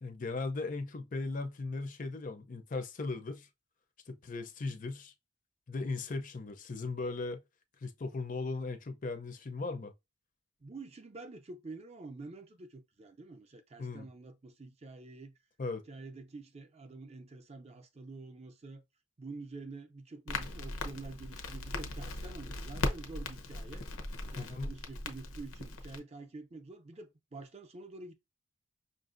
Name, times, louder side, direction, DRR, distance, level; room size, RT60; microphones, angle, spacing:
voice 1, 0.0-3.5 4.1-5.1 5.7-7.4 7.8-9.9 13.8-14.1 15.6-15.8 24.4-24.7, left 3 dB, 40° left, 0.5 m, -37 dB
voice 2, 10.6-15.3 15.9-18.8 19.2-23.9 24.3-28.1, right 3 dB, 30° right, 0.5 m, -47 dB
Crackle, 20.3-26.0, left 2 dB, 85° left, 0.8 m, -39 dB
5.5 x 2.6 x 2.5 m
head